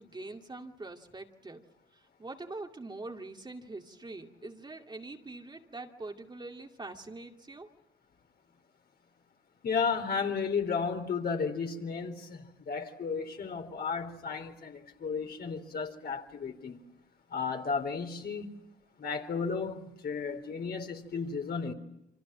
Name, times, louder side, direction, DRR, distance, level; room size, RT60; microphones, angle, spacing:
voice 1, 0.0-1.6 1.9-7.7, right 2 dB, 20° right, 2.3 m, -44 dB
voice 2, 9.6-16.8 17.3-18.5 19.0-21.7, left 5 dB, 50° left, 3.9 m, -33 dB
28.5 x 25.5 x 7.6 m
cardioid pair, 90°, 20 cm